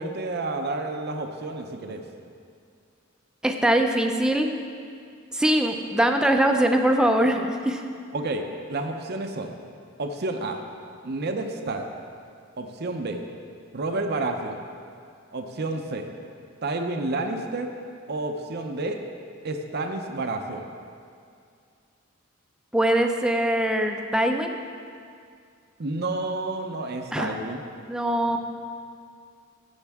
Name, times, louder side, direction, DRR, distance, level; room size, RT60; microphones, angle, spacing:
voice 1, 0.0-2.0 8.1-9.6 10.0-10.6 11.0-11.9 12.6-13.2 13.7-14.6 15.3-16.1 16.6-17.7 18.1-19.0 19.4-20.6 25.8-27.6 28.3-28.4, right 2 dB, 50° right, 4 dB, 0.7 m, -30 dB
voice 2, 3.4-4.5 5.3-7.8 22.7-24.6 27.1-27.3 27.9-28.4, right 1 dB, 5° right, 4 dB, 0.6 m, -22 dB
15.5 x 7.2 x 3.6 m, 2.3 s
head